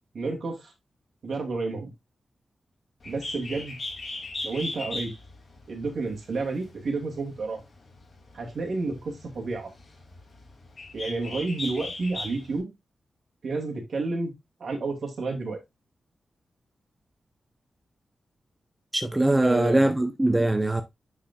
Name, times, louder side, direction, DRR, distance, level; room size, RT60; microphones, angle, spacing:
voice 1, 0.1-0.7 1.2-1.9 3.0-3.8 4.4-5.1 5.7-7.6 8.3-9.7 10.9-12.7 13.4-14.3 14.6-15.6 19.4-19.8, right 3 dB, 60° right, 2.5 m, -30 dB
Bird, 3.0-12.6, left 2 dB, 45° left, 2.4 m, -39 dB
voice 2, 18.9-20.8, right 1 dB, 10° right, 0.6 m, -22 dB
8.9 x 5.0 x 2.3 m
wide cardioid pair, 130°, 0 cm